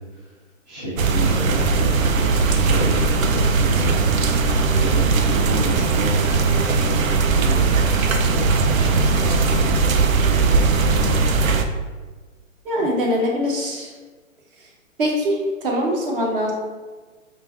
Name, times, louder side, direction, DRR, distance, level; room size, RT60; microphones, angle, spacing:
voice 1, 0.7-3.9 4.3-7.7 8.2-11.5, equal, 15° right, -13 dB, 0.4 m, -30 dB
sound 1, 1.0-11.6, right 4 dB, 85° right, 0.5 m, -19 dB
voice 2, 12.6-13.9 15.0-16.5, equal, 40° right, -1 dB, 0.9 m, -22 dB
5.1 x 2.5 x 2.4 m, 1.4 s
hypercardioid pair, 145°, 40 cm